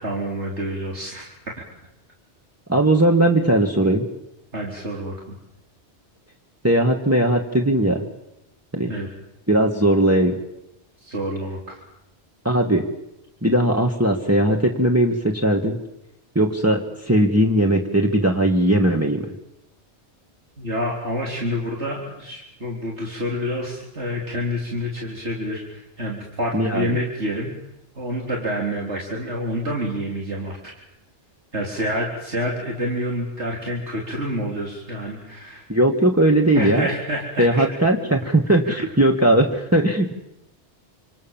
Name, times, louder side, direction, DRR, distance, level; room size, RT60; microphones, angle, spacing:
voice 1, 0.0-1.3 4.5-5.4 8.9-9.1 11.0-11.8 20.6-27.5 28.0-30.7 31.5-35.6 36.5-37.7 38.5-38.7, equal, 75° right, -1 dB, 4.2 m, -28 dB
voice 2, 2.7-4.1 6.6-8.0 8.7-8.9 9.5-10.4 12.4-12.9 13.4-15.8 16.4-19.3 26.5-26.9 35.7-36.9 37.4-40.1, right 1 dB, 15° right, 1 dB, 2.1 m, -18 dB
28.0 x 27.0 x 7.4 m, 0.86 s
omnidirectional pair, 1.2 m